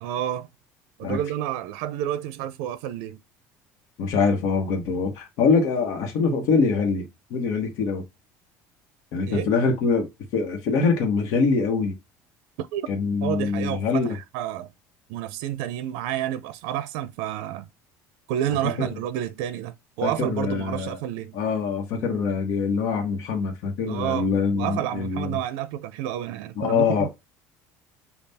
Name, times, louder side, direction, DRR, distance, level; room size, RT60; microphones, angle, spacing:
voice 1, 0.0-0.5 1.0-3.2 9.3-9.5 12.6-12.9 13.2-14.7 15.1-17.7 18.3-21.3 23.9-24.3 24.5-27.1, right 11 dB, 85° right, 0.5 m, -30 dB
voice 2, 4.0-8.0 9.1-10.1 10.3-11.9 12.9-14.2 20.0-21.0 21.3-25.4 26.6-27.1, left 5 dB, 60° left, 1.1 m, -24 dB
5.5 x 2.3 x 4.1 m
cardioid pair, 165°, 6 cm